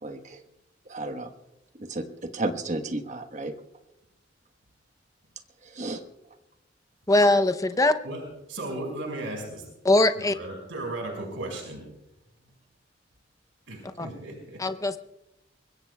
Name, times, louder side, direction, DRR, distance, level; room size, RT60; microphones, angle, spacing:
voice 1, 0.0-0.4 0.9-1.3 1.7-3.5 5.6-6.0, right 2 dB, 40° right, 7 dB, 1.2 m, -33 dB
voice 2, 7.1-7.9 9.8-10.4 14.0-14.1 14.6-15.0, left 2 dB, 15° left, 10 dB, 0.7 m, -21 dB
voice 3, 8.5-9.7 10.1-11.8 13.7-14.6, right 2 dB, 90° right, 1 dB, 5.2 m, -35 dB
24.5 x 21.5 x 2.3 m, 0.89 s
head